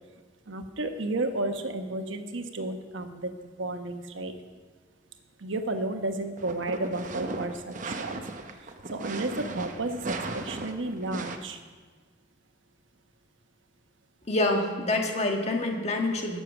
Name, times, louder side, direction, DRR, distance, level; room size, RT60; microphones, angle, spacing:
voice 1, 0.5-4.3 5.4-8.2 8.9-10.0 10.3-11.6, right 2 dB, 90° right, 6 dB, 1.1 m, -32 dB
sound 1, 6.4-11.4, right 2 dB, 40° right, 0.8 m, -36 dB
voice 2, 14.3-16.4, left 2 dB, 35° left, 2 dB, 1.5 m, -26 dB
17.0 x 6.9 x 6.1 m, 1.4 s
head